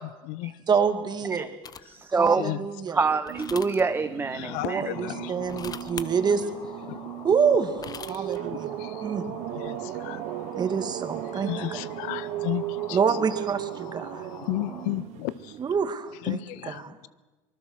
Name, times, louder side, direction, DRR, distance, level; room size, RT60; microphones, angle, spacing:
voice 1, 0.0-0.6 2.4-3.0 4.3-6.1 6.8-7.0 8.1-10.2 11.3-13.2 14.4-15.6 16.2-17.1, left 16 dB, 80° left, 18 dB, 0.7 m, -35 dB
voice 2, 0.7-1.4 2.1-3.0 4.6-6.5 7.2-9.3 10.5-11.8 12.9-14.2 15.6-16.4 16.7-17.0, right 6 dB, 35° right, 8 dB, 2.1 m, -27 dB
sound 1, 1.6-2.0 3.3-3.8 5.4-6.1 7.5-8.4, left 6 dB, 30° left, 0.9 m, -40 dB
voice 3, 1.9-2.4 2.9-4.8, right 4 dB, 20° right, 11 dB, 0.7 m, -25 dB
sound 2, 3.3-15.9, right 17 dB, 70° right, 0.7 m, -37 dB
sound 3, 4.4-14.9, left 4 dB, 45° left, 5.6 m, -45 dB
25.5 x 20.0 x 6.4 m, 1.2 s
supercardioid pair, 100°, 12 cm